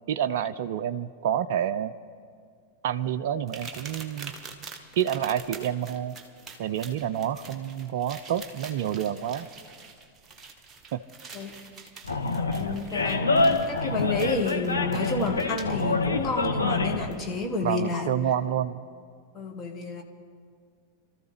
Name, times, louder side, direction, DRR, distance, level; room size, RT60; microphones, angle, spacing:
voice 1, 0.1-1.9 2.8-4.3 5.0-6.2 6.6-9.5 10.9-11.0 17.6-18.8, right 10 dB, 50° right, 12 dB, 0.4 m, -28 dB
sound 1, 3.5-15.8 17.1-17.2 17.8-17.9, right 4 dB, 20° right, 1.3 m, -45 dB
Animal, 12.0-17.1, left 3 dB, 80° left, 1.2 m, -26 dB
voice 2, 12.5-18.1 19.3-20.0, left 3 dB, 20° left, 2 dB, 1.6 m, -30 dB
27.0 x 13.5 x 3.4 m, 2.1 s
figure-of-eight pair, 90°, 0 cm